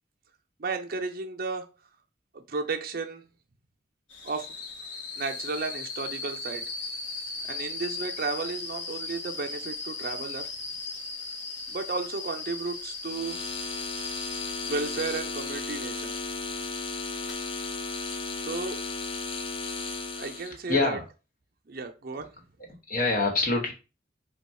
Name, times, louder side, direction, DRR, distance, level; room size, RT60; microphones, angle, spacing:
voice 1, 0.6-1.7 2.3-3.2 4.2-4.6 5.2-6.7 7.5-10.5 11.7-13.4 14.7-16.2 18.4-18.8 20.1-21.0 21.7-22.3, right 4 dB, 50° right, 0.6 m, -33 dB
sound 1, 4.1-15.7 17.1-17.3, left 4 dB, 85° left, 1.2 m, -37 dB
sound 2, 13.1-20.5, left 4 dB, 30° left, 0.5 m, -35 dB
voice 2, 20.5-21.0 22.7-23.7, left 3 dB, 50° left, 1.2 m, -26 dB
3.5 x 2.3 x 4.2 m
head